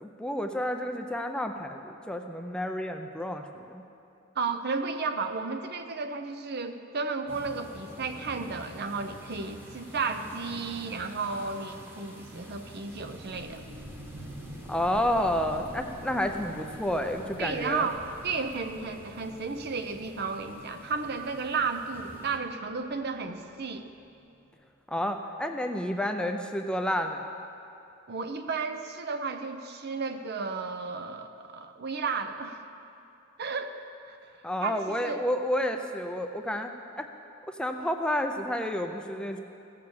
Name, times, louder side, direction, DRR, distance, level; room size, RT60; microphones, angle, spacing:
voice 1, 0.0-3.8 14.7-17.9 24.9-27.3 34.4-37.1 37.5-39.4, left 1 dB, 5° left, 5 dB, 0.5 m, -30 dB
voice 2, 4.4-13.6 17.4-23.9 28.1-32.6 33.4-33.8 34.1-34.2 34.6-35.2, right 4 dB, 50° right, 8 dB, 0.7 m, -33 dB
sound 1, 7.3-22.4, equal, 10° right, 1.2 m, -49 dB
sound 2, 12.8-24.2, equal, 70° right, 1.5 m, -47 dB
15.5 x 6.7 x 7.0 m, 2.7 s
head